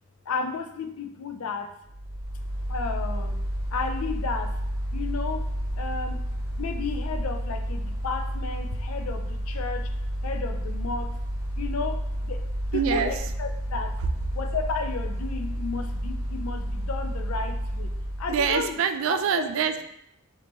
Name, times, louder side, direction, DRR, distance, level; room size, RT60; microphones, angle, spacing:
voice 1, 0.3-1.7 2.7-3.4 3.7-4.5 4.9-5.5 5.8-6.2 6.6-9.9 10.2-11.1 11.6-14.0 14.3-17.9 18.2-18.8 19.1-19.5, left 4 dB, 85° left, 7 dB, 0.4 m, -33 dB
Mechanical fan, 1.9-18.7, equal, 55° left, 1.1 m, -31 dB
voice 2, 12.7-13.1 18.3-19.9, right 7 dB, 70° right, 8 dB, 0.3 m, -25 dB
3.4 x 2.8 x 3.0 m, 0.75 s
head